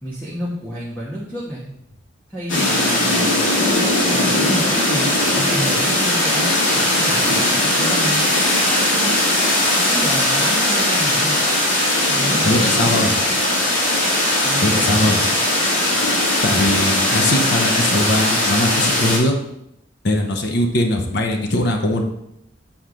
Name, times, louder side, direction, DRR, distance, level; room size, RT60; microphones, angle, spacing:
voice 1, 0.0-1.7 2.3-3.5 4.1-5.0 5.4-8.3 8.9-9.2 9.7-11.4 12.1-13.2 14.4-15.4, equal, 10° left, -5 dB, 1.2 m, -30 dB
sound 1, 2.5-19.2, left 1 dB, 75° left, 2.4 m, -19 dB
voice 2, 12.4-13.1 14.6-15.2 16.4-19.3 20.0-22.0, left 1 dB, 60° left, 3 dB, 0.9 m, -20 dB
8.0 x 4.4 x 5.1 m, 0.80 s
head